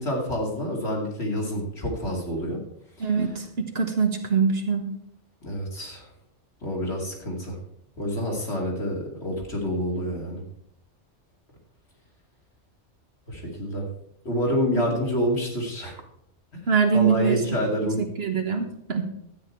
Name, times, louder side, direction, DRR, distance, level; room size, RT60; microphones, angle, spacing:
voice 1, 0.0-2.6 5.4-6.0 6.6-7.6 8.0-10.4 13.3-13.8 14.2-16.0 16.9-18.0, equal, 65° left, -1 dB, 2.8 m, -27 dB
voice 2, 3.0-5.0 16.7-19.1, right 6 dB, 60° right, 5 dB, 1.5 m, -24 dB
12.0 x 8.9 x 4.5 m, 0.73 s
omnidirectional pair, 1.2 m